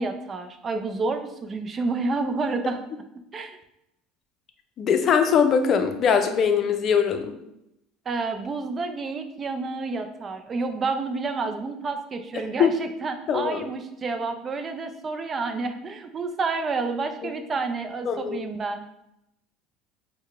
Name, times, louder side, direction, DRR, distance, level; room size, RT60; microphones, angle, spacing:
voice 1, 0.0-2.8 3.3-3.6 8.1-18.8, right 3 dB, 35° right, 7 dB, 0.5 m, -29 dB
voice 2, 4.8-7.3 12.6-12.7 13.3-13.7 17.2-17.3 18.1-18.4, left 7 dB, 45° left, 7 dB, 0.5 m, -21 dB
4.6 x 2.1 x 3.3 m, 0.83 s
hypercardioid pair, 75°, 0 cm